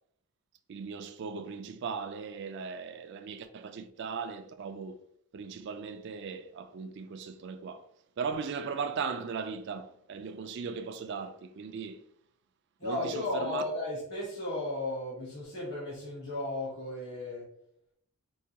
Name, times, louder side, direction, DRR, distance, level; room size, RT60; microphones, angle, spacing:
voice 1, 0.7-5.0 5.3-7.8 8.2-12.0 12.8-13.6, right 5 dB, 50° right, 0.3 m, -38 dB
voice 2, 12.8-17.5, left 2 dB, 50° left, 1.1 m, -35 dB
4.6 x 2.3 x 2.8 m
head